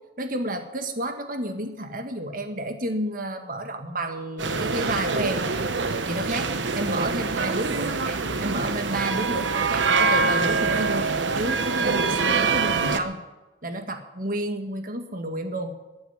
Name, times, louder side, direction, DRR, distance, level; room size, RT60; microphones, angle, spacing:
voice 1, 0.2-5.4 6.1-13.2 13.6-15.7, right 1 dB, 50° right, 6 dB, 1.8 m, -30 dB
sound 1, 4.4-13.0, right 4 dB, 85° right, 1.1 m, -25 dB
13.5 x 9.1 x 9.7 m, 1.1 s
head